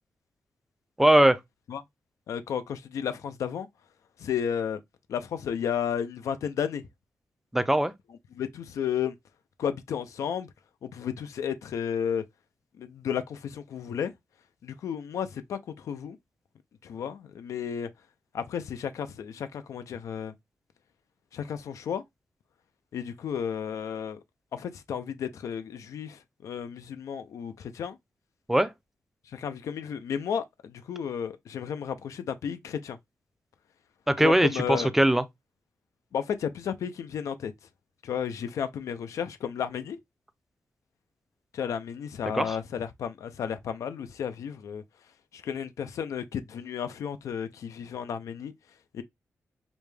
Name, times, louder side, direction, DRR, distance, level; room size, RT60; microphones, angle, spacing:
voice 1, 1.0-1.4 7.5-7.9 28.5-28.7 34.1-35.2 42.3-42.6, right 1 dB, 5° right, 0.4 m, -21 dB
voice 2, 2.3-3.7 4.2-4.8 5.1-6.8 8.3-9.1 9.6-10.5 10.8-12.2 12.8-14.1 14.6-16.2 16.8-17.9 18.3-20.3 21.3-22.0 22.9-24.2 24.5-28.0 29.3-33.0 34.2-34.9 36.1-37.5 38.0-40.0 41.5-44.8 45.3-48.5 48.9-49.0, left 8 dB, 80° left, 0.4 m, -33 dB
5.0 x 2.2 x 3.2 m
cardioid pair, 95°, 5 cm